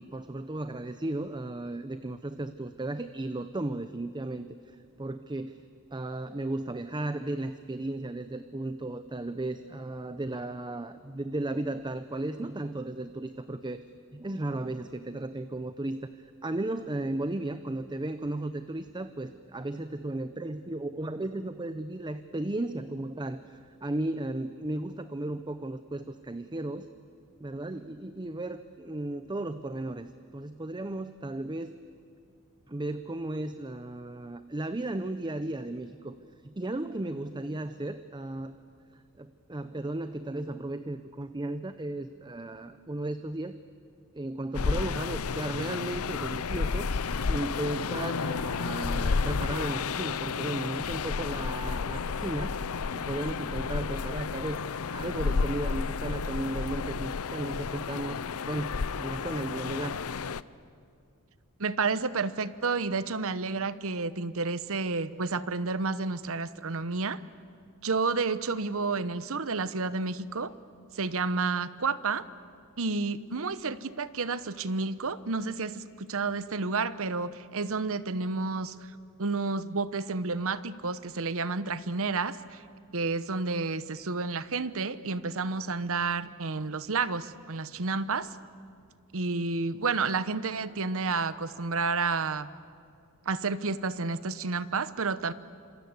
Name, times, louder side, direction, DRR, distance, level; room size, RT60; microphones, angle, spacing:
voice 1, 0.0-5.6 5.9-13.8 14.1-26.9 27.4-31.7 32.7-36.2 36.4-38.5 38.9-43.6 44.1-46.9 47.3-52.5 52.9-54.6 54.9-60.0, right 2 dB, 20° right, 11 dB, 0.7 m, -35 dB
sound 1, 44.5-60.4, left 5 dB, 70° left, 0.6 m, -31 dB
voice 2, 61.6-67.2 67.8-70.5 70.9-72.2 72.8-78.8 79.2-82.6 82.9-88.3 89.1-92.5 93.3-95.3, right 4 dB, 70° right, 15 dB, 1.0 m, -30 dB
27.0 x 26.5 x 8.1 m, 2.3 s
head